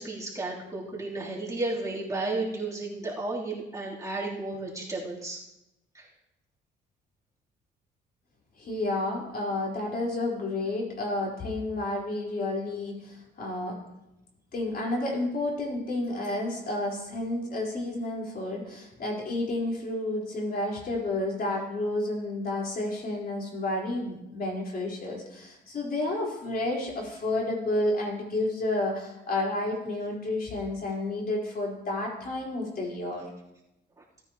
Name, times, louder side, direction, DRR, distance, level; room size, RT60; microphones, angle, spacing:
voice 1, 0.0-5.4 5.9-6.0, right 2 dB, 15° right, -6 dB, 3.2 m, -33 dB
voice 2, 8.6-13.8 14.5-33.2, left 2 dB, 50° left, -3 dB, 4.3 m, -31 dB
17.0 x 9.7 x 3.0 m, 0.90 s
cardioid pair, 90°, 20 cm